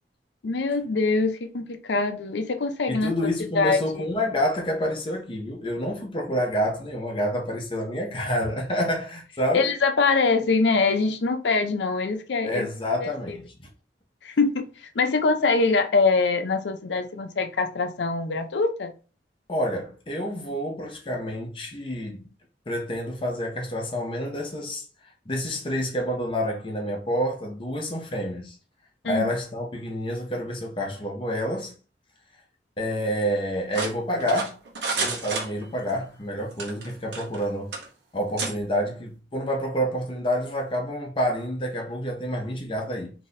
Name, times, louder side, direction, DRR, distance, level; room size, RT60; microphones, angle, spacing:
voice 1, 0.4-3.1 3.5-4.1 9.5-12.7 13.0-13.4 14.2-18.9 29.0-29.3, left 4 dB, 85° left, 0.5 m, -24 dB
voice 2, 2.9-9.7 12.5-13.4 19.5-22.2 22.7-24.8 25.3-28.5 29.0-31.7 32.8-34.6 35.0-37.7 38.1-43.1, equal, 30° left, 0.7 m, -28 dB
sound 1, 33.7-36.0 36.5-37.4 37.7-37.9 38.4-38.5, right 4 dB, 75° right, 0.9 m, -30 dB
2.8 x 2.6 x 4.0 m
head